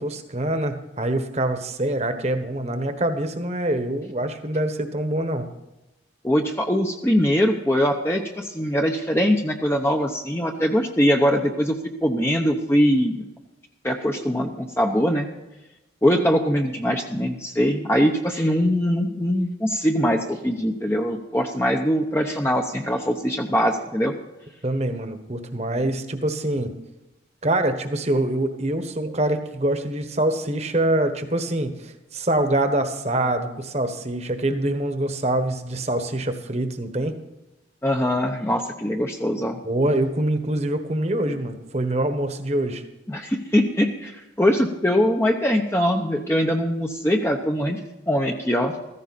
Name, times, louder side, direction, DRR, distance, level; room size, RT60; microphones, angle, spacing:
voice 1, 0.0-5.5 24.6-26.7 27.4-37.1 39.6-42.8, right 1 dB, 35° right, 7 dB, 1.3 m, -25 dB
voice 2, 6.2-13.2 13.8-15.3 16.0-24.1 37.8-39.6 43.1-47.8 48.1-48.7, equal, 15° left, 2 dB, 0.9 m, -22 dB
15.0 x 15.0 x 4.2 m, 0.99 s
head